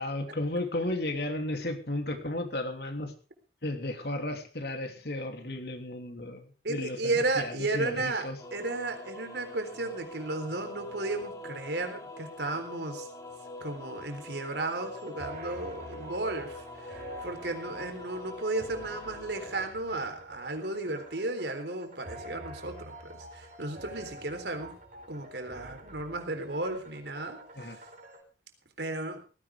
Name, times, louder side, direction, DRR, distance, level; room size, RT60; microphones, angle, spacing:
voice 1, 0.0-3.1 3.6-8.4 27.6-27.8, left 1 dB, 60° left, 5 dB, 3.0 m, -34 dB
voice 2, 6.6-13.1 13.6-24.7 25.1-27.9 28.8-29.2, right 2 dB, 70° right, 6 dB, 3.8 m, -34 dB
sound 1, 8.4-19.7, left 2 dB, 20° left, 3.9 m, -44 dB
sound 2, 14.6-28.2, right 1 dB, 45° right, 4.6 m, -47 dB
18.0 x 16.0 x 3.6 m, 0.35 s
head